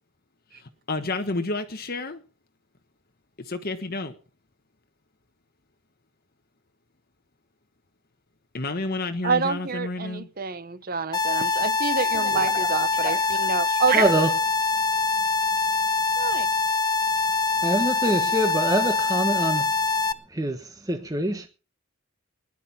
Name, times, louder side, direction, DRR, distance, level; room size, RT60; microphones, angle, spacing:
voice 1, 0.6-2.2 3.4-4.2 8.5-10.3, left 2 dB, 45° left, 1.2 m, -30 dB
voice 2, 9.2-14.1 16.2-16.5, right 5 dB, 40° right, 1.0 m, -27 dB
sound 1, 11.1-20.1, left 4 dB, 20° left, 0.8 m, -24 dB
voice 3, 12.2-12.7 13.0-13.2 13.9-14.3 17.6-19.7 20.3-21.5, right 1 dB, 15° right, 1.1 m, -25 dB
19.0 x 11.5 x 5.7 m
head